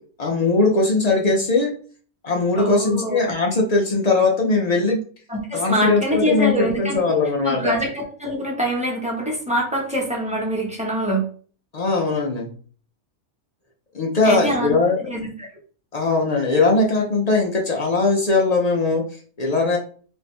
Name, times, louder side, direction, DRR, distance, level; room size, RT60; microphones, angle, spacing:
voice 1, 0.2-1.7 2.2-5.0 5.5-7.8 11.7-12.5 13.9-15.1 15.9-19.0 19.4-19.8, left 3 dB, 70° left, -1 dB, 0.3 m, -20 dB
voice 2, 2.6-3.3 5.3-7.1 7.4-11.2 14.2-14.7 15.1-15.5, equal, 5° right, -3 dB, 0.9 m, -24 dB
3.2 x 2.6 x 3.3 m, 0.43 s
omnidirectional pair, 1.5 m